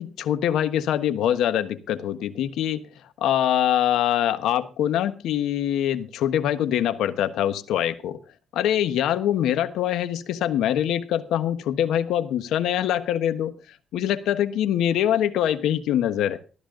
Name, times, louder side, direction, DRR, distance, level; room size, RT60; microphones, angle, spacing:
voice 1, 0.0-2.8 3.2-8.2 8.5-13.5 13.9-16.4, left 11 dB, 85° left, 11 dB, 1.2 m, -24 dB
14.0 x 12.5 x 3.9 m, 0.35 s
cardioid pair, 90°, 0 cm